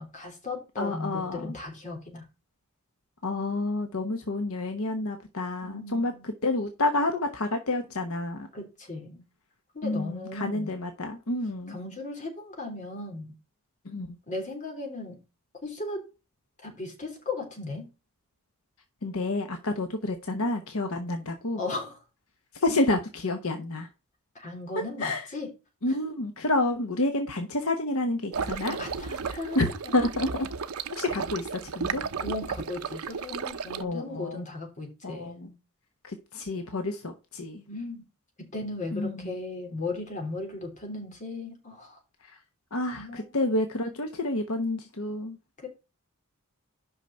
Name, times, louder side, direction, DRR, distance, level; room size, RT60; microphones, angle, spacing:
voice 1, 0.0-2.2 5.6-6.3 8.5-9.2 9.7-10.7 11.7-13.4 14.3-15.2 15.6-16.0 16.6-17.9 20.8-21.0 21.6-22.0 24.4-25.5 25.9-26.0 28.5-30.0 32.2-35.5 37.7-38.0 38.4-42.0 43.0-43.3 45.6-45.7, left 2 dB, 35° left, 3.5 m, -37 dB
voice 2, 0.8-1.5 3.2-8.5 9.8-11.8 13.8-14.2 19.0-21.6 22.5-23.9 24.7-25.3 25.8-28.8 29.3-29.7 29.9-30.5 30.9-32.0 33.8-34.4 35.0-35.5 36.0-37.6 38.9-39.4 42.2-42.4 42.7-45.4, left 2 dB, 70° left, 1.1 m, -29 dB
sound 1, 28.3-33.8, right 5 dB, 85° right, 0.7 m, -34 dB
6.0 x 5.8 x 6.7 m
head